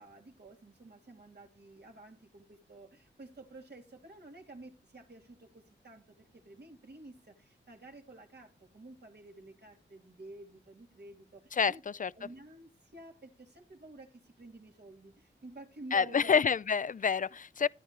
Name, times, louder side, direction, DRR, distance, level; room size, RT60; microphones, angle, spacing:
voice 1, 0.0-11.8 12.1-16.3, right 2 dB, 55° right, 3.3 m, -51 dB
voice 2, 11.6-12.1 15.9-17.7, left 6 dB, 40° left, 0.5 m, -28 dB
14.0 x 10.0 x 3.3 m
cardioid pair, 60°, 21 cm